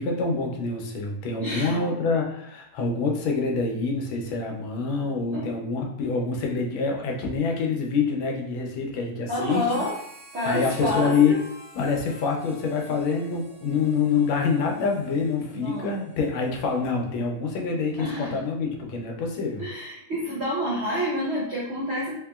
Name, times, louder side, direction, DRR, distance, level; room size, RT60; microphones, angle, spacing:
voice 1, 0.0-9.8 10.4-11.4 11.7-19.6, left 4 dB, 85° left, 1 dB, 1.5 m, -26 dB
voice 2, 1.4-1.8 5.3-5.5 9.3-9.9 10.3-11.4 15.5-15.9 18.0-18.4 19.6-22.2, equal, 85° right, -6 dB, 0.5 m, -28 dB
Harmonica, 9.4-17.2, equal, 35° right, 1.1 m, -50 dB
4.0 x 2.8 x 2.3 m, 0.74 s
omnidirectional pair, 2.2 m